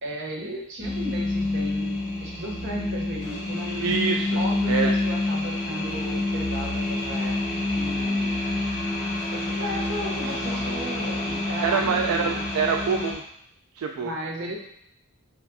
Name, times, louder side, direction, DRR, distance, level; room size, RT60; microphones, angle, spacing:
voice 1, 0.0-4.0 4.3-8.4 9.3-12.4 14.0-14.6, right 1 dB, 50° right, -1 dB, 0.8 m, -35 dB
sound 1, 0.8-13.1, left 2 dB, 40° left, 1.2 m, -27 dB
voice 2, 3.8-4.4 4.7-4.9 11.6-13.2 13.8-14.1, right 5 dB, 75° right, 4 dB, 0.3 m, -25 dB
6.6 x 2.5 x 2.6 m, 0.75 s
head